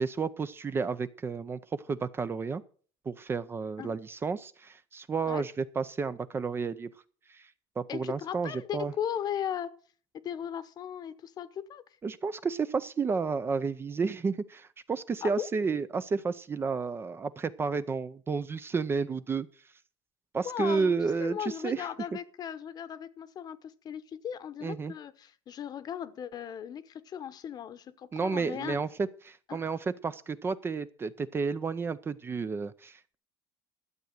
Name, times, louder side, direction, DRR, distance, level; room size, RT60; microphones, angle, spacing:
voice 1, 0.0-2.6 3.1-6.9 7.3-7.5 7.8-8.9 12.0-19.5 20.3-21.9 24.6-24.9 28.1-33.2, right 5 dB, 25° right, 14 dB, 0.6 m, -31 dB
voice 2, 7.9-9.7 10.1-11.8 15.2-15.5 20.4-20.9 21.2-28.8 29.5-29.6, left 9 dB, 40° left, 14 dB, 0.9 m, -37 dB
12.5 x 7.8 x 6.5 m, 0.43 s
cardioid pair, 130°, 10 cm